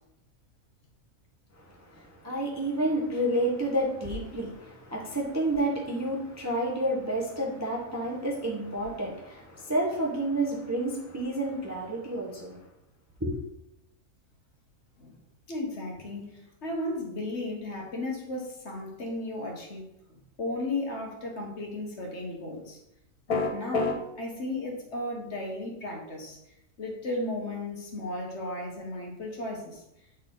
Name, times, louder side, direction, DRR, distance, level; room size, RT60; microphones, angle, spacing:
voice 1, 1.9-12.6 13.2-13.4, right 1 dB, 15° right, -2 dB, 0.7 m, -30 dB
voice 2, 15.5-19.9 20.4-22.8 23.3-26.4 26.8-29.8, left 2 dB, 50° left, 0 dB, 1.4 m, -35 dB
sound 1, 23.3-24.0, left 4 dB, 90° left, 1.7 m, -26 dB
8.6 x 4.2 x 3.8 m, 0.84 s
omnidirectional pair, 1.5 m